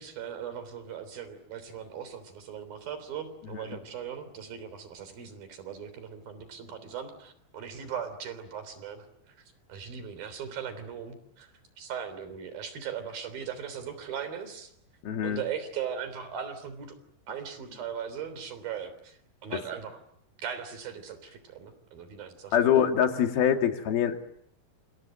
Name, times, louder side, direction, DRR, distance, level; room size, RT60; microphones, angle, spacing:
voice 1, 0.0-9.3 9.7-11.5 11.8-14.7 15.2-17.0 17.3-20.0 20.4-22.7, right 8 dB, 75° right, 12 dB, 5.2 m, -39 dB
voice 2, 15.0-15.4 19.5-19.6 22.5-24.2, left 9 dB, 85° left, 5 dB, 4.2 m, -24 dB
28.5 x 27.0 x 7.7 m, 0.71 s
omnidirectional pair, 4.2 m